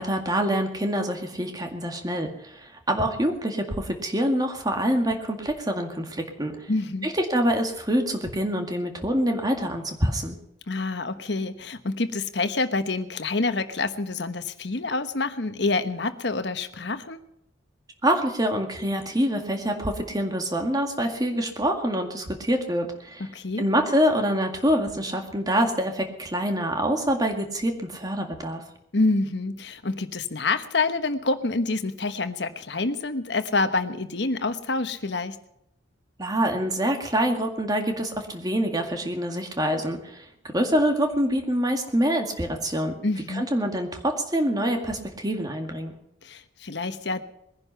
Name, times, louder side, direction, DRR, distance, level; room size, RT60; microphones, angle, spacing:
voice 1, 0.0-6.7 7.0-10.4 18.0-23.2 23.6-28.6 36.2-40.3 40.5-42.9 43.4-45.9, equal, 20° right, 4 dB, 2.0 m, -25 dB
voice 2, 6.7-7.1 10.7-17.2 23.3-23.6 28.9-35.4 43.0-43.5 46.2-47.2, left 3 dB, 65° left, 9 dB, 1.2 m, -27 dB
21.0 x 10.5 x 5.7 m, 0.79 s
head